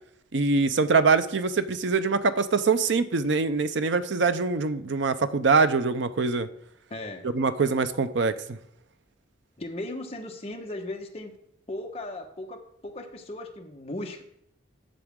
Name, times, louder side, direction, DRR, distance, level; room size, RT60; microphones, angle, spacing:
voice 1, 0.3-6.5 7.3-8.6, right 4 dB, 75° right, 11 dB, 0.6 m, -24 dB
voice 2, 6.9-7.3 9.6-11.3 11.7-14.2, left 1 dB, 35° left, 2 dB, 1.2 m, -37 dB
12.5 x 7.1 x 3.7 m, 0.73 s
head